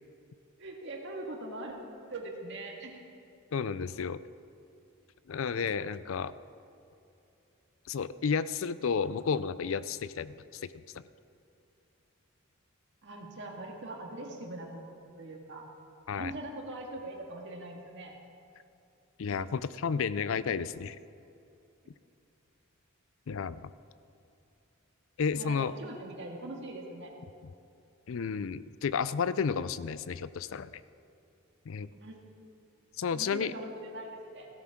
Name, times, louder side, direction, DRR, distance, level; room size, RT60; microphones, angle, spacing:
voice 1, 0.6-1.8 2.1-3.0 13.0-14.8 15.2-15.7 16.1-18.1 25.3-27.1 32.0-32.2 33.1-34.5, right 2 dB, 55° right, 0 dB, 1.8 m, -42 dB
voice 2, 3.5-4.2 5.3-6.3 7.9-10.6 16.1-16.3 19.2-21.0 23.3-23.7 25.2-25.7 28.1-30.7 31.7-31.9 33.0-33.5, left 6 dB, 65° left, 16 dB, 0.4 m, -32 dB
16.0 x 13.0 x 3.7 m, 2.7 s
head